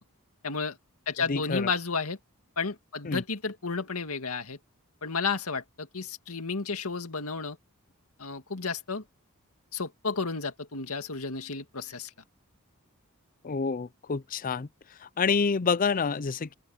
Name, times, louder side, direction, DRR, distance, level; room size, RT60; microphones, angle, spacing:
voice 1, 0.4-0.8 1.1-2.2 2.6-4.6 5.0-7.6 8.2-9.0 9.7-12.1, left 4 dB, 85° left, 2.1 m, -32 dB
voice 2, 1.3-1.7 3.0-3.2 13.4-14.7 15.0-16.5, left 5 dB, 40° left, 0.5 m, -28 dB
open air
head